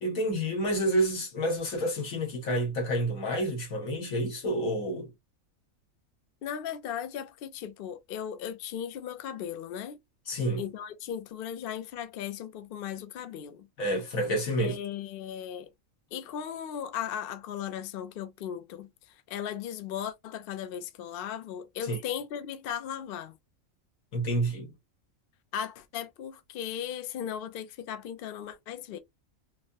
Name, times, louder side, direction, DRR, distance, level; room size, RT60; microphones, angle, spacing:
voice 1, 0.0-5.1 10.3-10.6 13.8-14.8 21.9-22.0 24.1-24.7, right 1 dB, 90° left, 1.6 m, -29 dB
voice 2, 6.4-10.0 10.6-13.7 14.6-15.7 16.1-18.9 19.3-23.4 25.5-29.0, left 9 dB, 60° left, 0.6 m, -37 dB
3.0 x 2.8 x 2.6 m
omnidirectional pair, 1.4 m